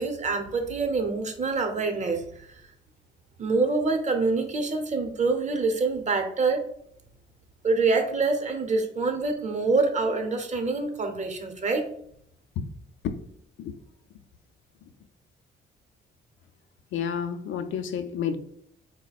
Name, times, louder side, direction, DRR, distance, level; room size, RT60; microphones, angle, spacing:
voice 1, 0.0-2.6 3.4-6.6 7.6-11.9, right 3 dB, 35° right, 5 dB, 0.8 m, -26 dB
voice 2, 16.9-18.4, left 7 dB, 75° left, 9 dB, 0.5 m, -30 dB
4.0 x 2.1 x 4.0 m, 0.69 s
cardioid pair, 90°, 20 cm